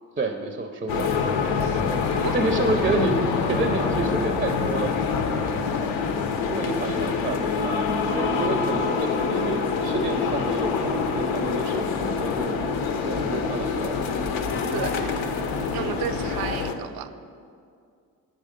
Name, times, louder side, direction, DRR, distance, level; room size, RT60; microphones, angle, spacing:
voice 1, 0.2-1.2 2.3-3.2 3.5-4.9 6.5-12.6 13.0-14.3 14.8-15.1 15.8-16.0, right 2 dB, 25° right, 5 dB, 0.5 m, -29 dB
sound 1, 0.9-16.7, left 5 dB, 85° left, 0.8 m, -26 dB
voice 2, 15.7-17.1, right 11 dB, 75° right, 11 dB, 0.5 m, -33 dB
8.0 x 6.4 x 5.1 m, 2.3 s
cardioid pair, 105°, 36 cm